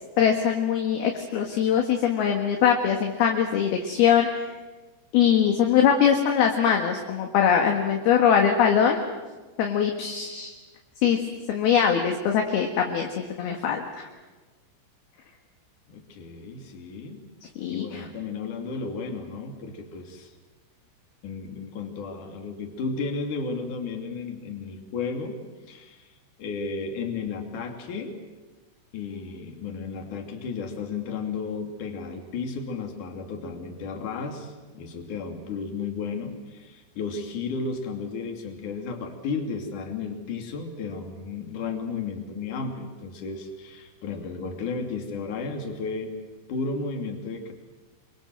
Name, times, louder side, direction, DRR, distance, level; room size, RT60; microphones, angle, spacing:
voice 1, 0.2-4.4 5.1-9.0 9.6-10.5 11.0-11.2 11.5-14.1 17.6-18.0, left 8 dB, 60° left, 3 dB, 3.1 m, -22 dB
voice 2, 15.9-17.3 17.7-20.3 21.2-25.4 25.7-26.1 26.4-28.2 28.9-46.1 46.5-47.5, left 4 dB, 45° left, 3 dB, 3.6 m, -33 dB
27.0 x 23.5 x 7.8 m, 1.3 s
omnidirectional pair, 5.7 m